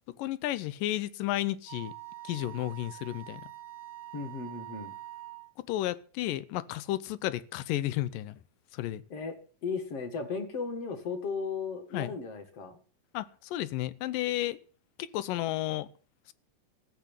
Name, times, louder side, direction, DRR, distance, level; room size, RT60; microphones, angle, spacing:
voice 1, 0.1-1.9 2.2-3.4 5.6-8.4 8.7-9.0 11.9-12.1 13.1-14.6 15.0-15.9, left 14 dB, 90° left, 2.5 m, -32 dB
Wind instrument woodwind instrument, 1.7-5.5, right 15 dB, 55° right, 1.4 m, -45 dB
voice 2, 4.1-4.9 9.1-9.3 9.6-12.8, left 4 dB, 50° left, 2.6 m, -35 dB
14.0 x 8.1 x 9.0 m
omnidirectional pair, 3.8 m